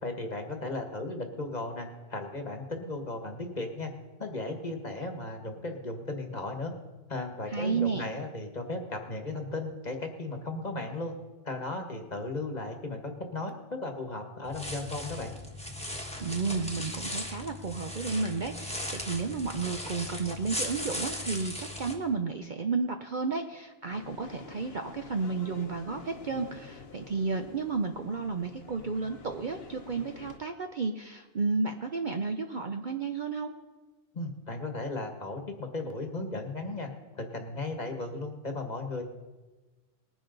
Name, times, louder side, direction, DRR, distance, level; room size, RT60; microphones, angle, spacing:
voice 1, 0.0-3.9 4.2-6.7 7.1-11.1 11.4-15.4 34.1-36.9 37.1-39.0, left 2 dB, 35° left, 4 dB, 1.4 m, -36 dB
voice 2, 7.5-8.1 16.2-33.5, right 4 dB, 45° right, 5 dB, 0.7 m, -32 dB
sound 1, 14.4-21.9, left 1 dB, 5° left, 1.3 m, -37 dB
sound 2, 23.9-30.4, left 5 dB, 55° left, 1.1 m, -48 dB
20.0 x 10.0 x 3.9 m, 1.2 s
omnidirectional pair, 1.3 m